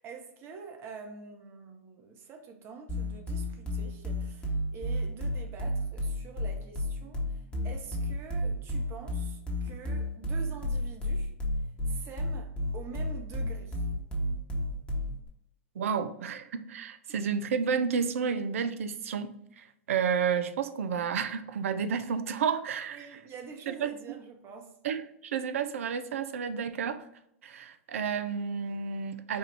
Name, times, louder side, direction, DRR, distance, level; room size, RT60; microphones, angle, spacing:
voice 1, 0.0-11.3 11.9-13.8 22.9-24.8, right 5 dB, 35° right, 0.8 m, -46 dB
sound 1, 2.9-15.3, left 1 dB, 15° left, 1.1 m, -32 dB
voice 2, 15.8-23.1 23.7-23.9 24.8-27.0 27.4-29.4, right 6 dB, 75° right, 0.4 m, -31 dB
4.4 x 2.4 x 3.3 m
hypercardioid pair, 105°, 7 cm